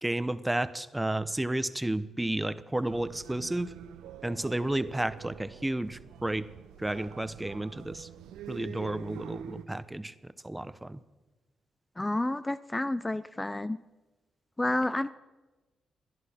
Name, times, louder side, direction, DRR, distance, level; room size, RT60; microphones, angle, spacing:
voice 1, 0.0-3.7 4.2-6.5 6.8-8.1 8.5-11.0, right 1 dB, 15° right, 14 dB, 0.8 m, -32 dB
sound 1, 2.9-9.6, right 9 dB, 90° right, 0.7 m, -46 dB
voice 2, 12.0-13.8 14.6-15.1, left 1 dB, 20° left, 13 dB, 0.5 m, -30 dB
29.0 x 11.0 x 4.4 m, 1.2 s
supercardioid pair, 50°, 0 cm